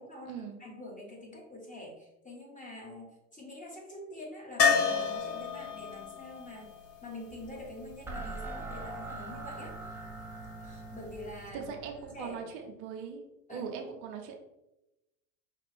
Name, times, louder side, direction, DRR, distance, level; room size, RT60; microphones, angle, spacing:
voice 1, 0.0-6.7 7.0-9.8 10.6-12.4 13.5-13.7, left 1 dB, 15° left, -2 dB, 1.5 m, -46 dB
sound 1, 4.6-8.5 11.1-11.2 11.5-11.6, left 5 dB, 85° left, 1.1 m, -31 dB
sound 2, 7.3-12.4, right 2 dB, 5° right, 0.8 m, -43 dB
voice 2, 11.5-13.2 13.5-14.4, right 7 dB, 60° right, 2 dB, 0.8 m, -40 dB
5.1 x 2.4 x 3.5 m, 0.95 s
hypercardioid pair, 85°, 48 cm